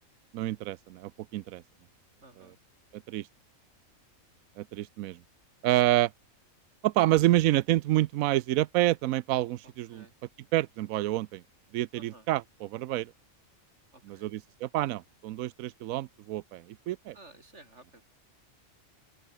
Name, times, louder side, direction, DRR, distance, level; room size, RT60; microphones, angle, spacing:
voice 1, 0.3-1.6 2.9-3.3 4.6-5.2 5.6-6.1 6.8-10.0 10.5-11.4 11.7-13.1 14.1-17.2, right 15 dB, 90° right, 1.0 m, -28 dB
voice 2, 2.2-2.6 9.6-10.1 11.9-12.3 13.9-14.3 17.1-18.0, right 2 dB, 55° right, 5.2 m, -54 dB
open air
omnidirectional pair, 1.4 m